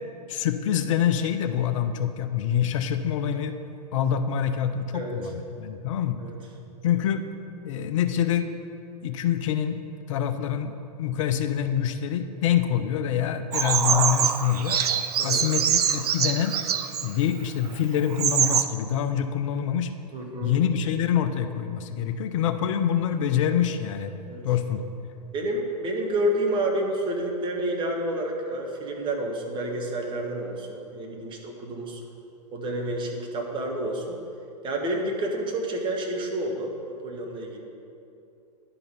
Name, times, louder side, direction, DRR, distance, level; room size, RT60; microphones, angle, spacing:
voice 1, 0.3-3.6 3.9-6.2 6.8-7.2 7.6-8.5 9.0-9.8 10.1-14.8 15.2-16.6 17.0-19.9 20.4-24.2 24.4-24.8, left 9 dB, 50° left, 8 dB, 0.5 m, -26 dB
Bird vocalization bird call bird song, 13.5-17.1 17.7-17.8 18.1-18.6, right 8 dB, 65° right, 0.5 m, -24 dB
voice 2, 20.1-20.5 24.3-24.4 25.3-32.0 32.5-34.2 34.6-37.6, right 1 dB, 25° right, 1 dB, 1.1 m, -29 dB
10.5 x 3.9 x 5.5 m, 2.7 s
figure-of-eight pair, 105°, 21 cm